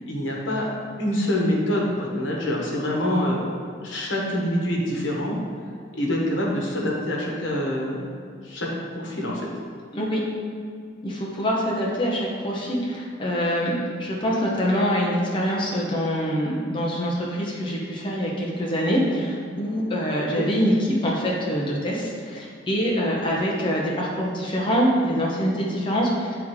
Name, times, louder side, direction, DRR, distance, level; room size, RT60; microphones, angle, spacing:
voice 1, 0.1-0.7 1.0-3.5 3.8-5.4 6.0-8.1 8.4-8.7 8.9-9.5 20.2-20.5, left 1 dB, 85° left, -2 dB, 1.2 m, -25 dB
voice 2, 11.0-20.7 21.0-26.4, equal, 25° left, -4 dB, 0.8 m, -25 dB
9.1 x 3.6 x 3.2 m, 2.1 s
head